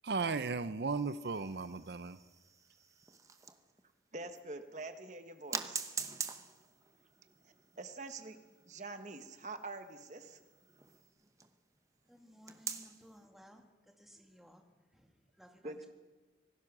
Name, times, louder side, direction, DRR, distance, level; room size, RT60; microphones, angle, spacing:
voice 1, 0.0-2.2, right 4 dB, 65° right, 13 dB, 0.6 m, -35 dB
sound 1, 0.9-3.8 4.3-4.4 5.5-11.5 12.5-13.1, right 5 dB, 20° right, 0.9 m, -45 dB
voice 2, 4.1-5.8 7.4-8.4 8.7-10.4 15.6-15.9, right 3 dB, 40° right, 8 dB, 1.3 m, -45 dB
sound 2, 4.5-11.1, right 4 dB, 85° right, 4.4 m, -74 dB
voice 3, 12.1-15.9, equal, ahead, 2 dB, 2.1 m, -59 dB
26.0 x 18.0 x 6.1 m, 1.3 s
head